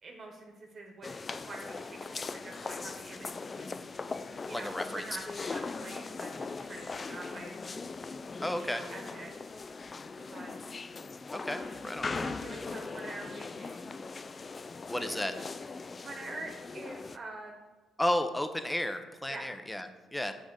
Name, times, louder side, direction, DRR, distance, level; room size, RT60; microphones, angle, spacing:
voice 1, 0.0-1.1 1.5-4.2 4.5-7.8 8.5-9.7 10.3-10.6 11.5-13.9 15.1-15.5 15.8-17.5 19.3-19.5, right 2 dB, 45° right, 2 dB, 1.2 m, -46 dB
sound 1, 1.0-17.2, left 4 dB, 35° left, 0.3 m, -40 dB
voice 2, 4.5-5.0 8.4-8.8 11.3-12.1 14.9-15.3 18.0-20.3, left 1 dB, 10° left, 8 dB, 0.7 m, -33 dB
6.2 x 5.1 x 6.3 m, 1.3 s
cardioid pair, 80°, 0 cm